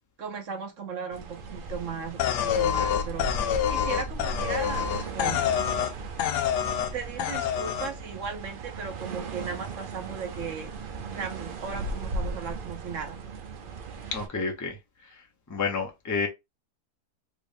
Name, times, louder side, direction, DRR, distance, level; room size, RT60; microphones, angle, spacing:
voice 1, 0.2-3.3 3.7-5.4 6.9-10.7 11.1-13.2, right 5 dB, 60° right, 1.0 m, -37 dB
sound 1, 1.1-14.3, right 3 dB, 90° right, 0.4 m, -37 dB
sound 2, 2.2-5.9 6.2-6.9 7.2-7.9, left 9 dB, 90° left, 1.2 m, -27 dB
voice 2, 14.1-16.3, left 4 dB, 20° left, 0.4 m, -31 dB
3.4 x 3.0 x 2.6 m
omnidirectional pair, 1.8 m